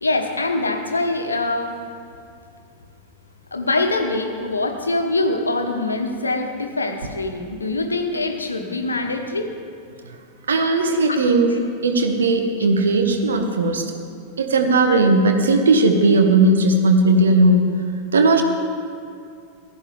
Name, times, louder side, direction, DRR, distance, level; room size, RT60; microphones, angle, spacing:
voice 1, 0.0-1.8 3.5-9.5 11.1-11.2 11.5-11.6, left 2 dB, 80° left, 5 dB, 0.9 m, -24 dB
voice 2, 10.5-11.6 11.8-13.9 14.4-17.7 18.1-18.4, right 2 dB, 70° right, 5 dB, 1.0 m, -17 dB
15.5 x 10.5 x 3.3 m, 2.4 s
figure-of-eight pair, 90°, 0 cm